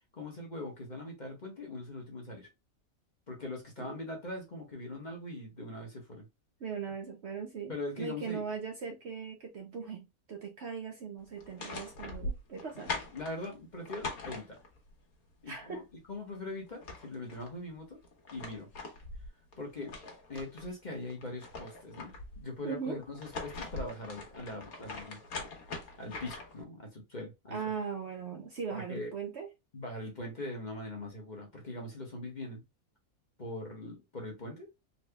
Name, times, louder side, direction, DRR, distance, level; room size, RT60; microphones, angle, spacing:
voice 1, 0.1-2.5 3.3-6.3 7.7-8.4 13.1-14.6 15.4-18.0 18.3-18.7 19.6-19.9 20.3-25.2 26.0-27.6 28.7-29.1 29.7-32.6 33.4-34.7, left 2 dB, 35° left, 1.1 m, -41 dB
voice 2, 6.6-7.7 8.0-12.9 15.5-15.8 22.6-23.0 27.5-29.5, right 6 dB, 55° right, 0.8 m, -39 dB
sound 1, 11.4-14.9 16.3-16.4 16.7-17.5 18.0-20.7 21.1-22.4 23.0-26.6, left 3 dB, 75° left, 1.5 m, -42 dB
3.9 x 3.2 x 2.2 m
omnidirectional pair, 1.6 m